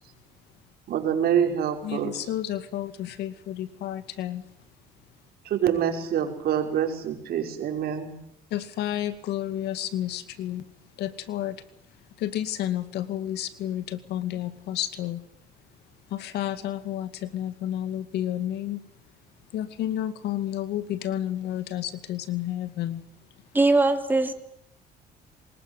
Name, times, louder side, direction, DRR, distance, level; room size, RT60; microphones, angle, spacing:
voice 1, 0.9-2.3 5.4-8.1, right 9 dB, 65° right, 4 dB, 5.5 m, -26 dB
voice 2, 1.8-4.4 8.5-10.6 11.0-11.6 12.2-15.2 16.1-18.8 19.5-23.0, left 12 dB, 80° left, 11 dB, 2.3 m, -31 dB
voice 3, 23.5-24.3, right 2 dB, 10° right, 6 dB, 3.1 m, -20 dB
25.0 x 20.5 x 9.8 m, 0.75 s
cardioid pair, 110°, 17 cm